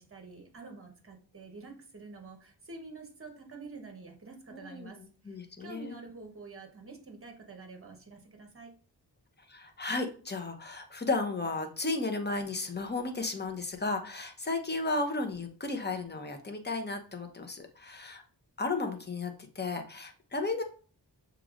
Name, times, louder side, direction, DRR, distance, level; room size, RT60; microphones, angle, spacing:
voice 1, 0.0-8.7, right 3 dB, 30° right, 4 dB, 1.1 m, -48 dB
voice 2, 4.5-4.9 5.2-5.9 9.5-18.2 18.6-20.6, left 3 dB, 25° left, 5 dB, 0.8 m, -34 dB
6.6 x 3.0 x 2.5 m, 0.40 s
wide cardioid pair, 65°, 43 cm